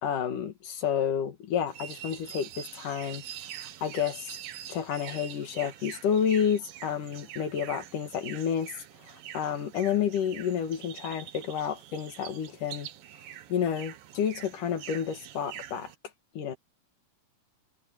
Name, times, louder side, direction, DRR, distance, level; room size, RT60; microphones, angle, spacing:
voice 1, 0.0-3.2 3.6-4.3 4.7-8.7 9.0-12.9 13.5-15.9 16.3-16.6, left 8 dB, 70° left, 3.4 m, -30 dB
sound 1, 1.7-15.9, right 11 dB, 85° right, 3.0 m, -45 dB
omnidirectional pair, 3.9 m